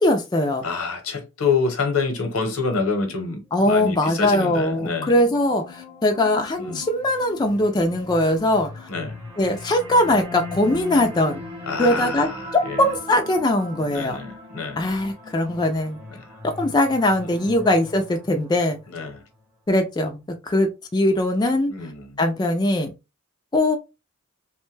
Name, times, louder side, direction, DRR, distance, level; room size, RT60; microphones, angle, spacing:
voice 1, 0.0-0.6 3.5-8.9 9.4-11.4 11.8-14.2 14.8-16.0 16.4-18.8 19.7-21.7 22.2-22.9 23.5-23.8, left 1 dB, 20° left, 0.4 m, -21 dB
voice 2, 0.6-5.1 6.6-6.8 8.9-9.1 11.7-12.8 13.9-14.8 17.2-17.4 18.9-19.2 21.7-22.2, left 4 dB, 75° left, 0.8 m, -27 dB
sound 1, 3.5-18.8, left 2 dB, 10° right, 0.7 m, -39 dB
3.0 x 2.1 x 3.1 m
head